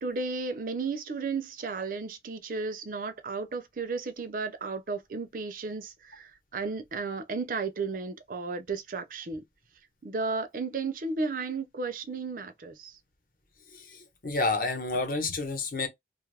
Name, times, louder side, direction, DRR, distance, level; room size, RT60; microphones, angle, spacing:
voice 1, 0.0-9.4 10.0-13.0, right 4 dB, 50° right, 0.4 m, -34 dB
voice 2, 13.7-15.9, left 3 dB, 50° left, 0.9 m, -30 dB
2.5 x 2.3 x 3.3 m
head